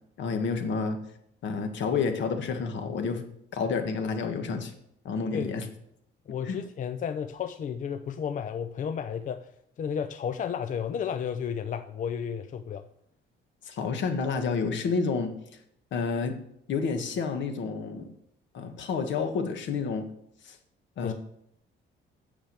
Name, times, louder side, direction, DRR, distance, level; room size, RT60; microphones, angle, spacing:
voice 1, 0.2-1.0 1.4-3.2 3.5-4.7 5.0-5.6 6.4-6.6 13.7-15.3 15.9-16.4 16.7-18.1 18.5-20.1 20.4-20.6 21.0-21.1, left 5 dB, 65° left, 6 dB, 1.5 m, -29 dB
voice 2, 6.3-9.5 9.8-12.8 21.0-21.1, left 7 dB, 40° left, 9 dB, 0.5 m, -32 dB
8.9 x 6.6 x 7.4 m, 0.73 s
cardioid pair, 170°, 21 cm